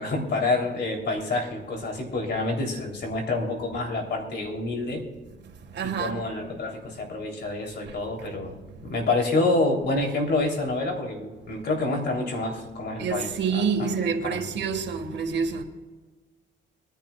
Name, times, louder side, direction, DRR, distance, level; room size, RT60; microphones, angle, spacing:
voice 1, 0.0-5.0 6.0-14.5, left 2 dB, 60° left, 3.4 m, -28 dB
voice 2, 5.7-6.2 7.9-8.0 13.0-15.6, right 6 dB, 60° right, 1.7 m, -27 dB
23.0 x 11.0 x 2.4 m
cardioid pair, 90°, 20 cm